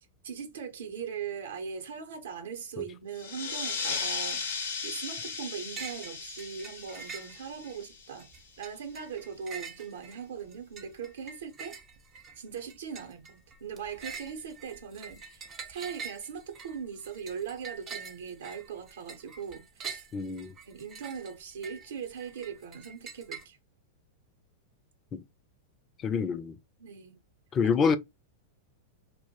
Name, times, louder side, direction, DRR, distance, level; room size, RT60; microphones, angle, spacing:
voice 1, 0.2-8.3 8.6-11.8 12.4-20.1 20.7-23.6 26.8-27.2, right 7 dB, 80° right, 0.6 m, -40 dB
sound 1, 3.1-8.4, left 5 dB, 80° left, 0.7 m, -36 dB
sound 2, 5.8-6.1 6.4-7.8 8.2-23.4, right 5 dB, 30° right, 0.5 m, -45 dB
voice 2, 20.1-20.5 25.1-25.2 26.0-26.6 27.5-28.0, left 5 dB, 30° left, 0.3 m, -27 dB
2.1 x 2.0 x 2.8 m
hypercardioid pair, 115°, 0 cm